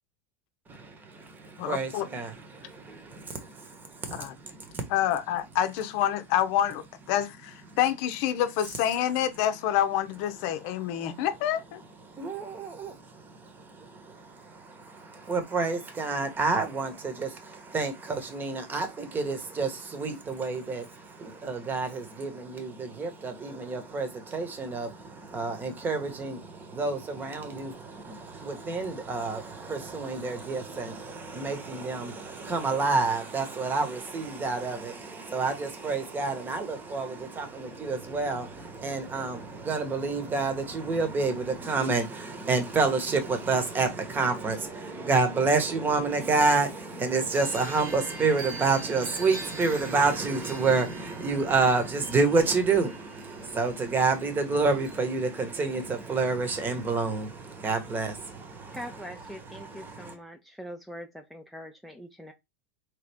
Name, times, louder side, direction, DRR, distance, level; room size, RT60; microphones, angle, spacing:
voice 1, 0.7-2.3 2.8-4.9 11.0-11.2 12.1-58.8 59.5-60.1, right 4 dB, 25° right, 1.2 m, -29 dB
voice 2, 1.6-2.0 4.1-4.3 4.9-11.8, left 11 dB, 60° left, 0.7 m, -27 dB
sound 1, 47.3-55.0, right 3 dB, 65° right, 1.8 m, -44 dB
voice 3, 58.7-62.3, equal, ahead, 0.6 m, -43 dB
3.6 x 3.0 x 3.4 m
supercardioid pair, 115°, 8 cm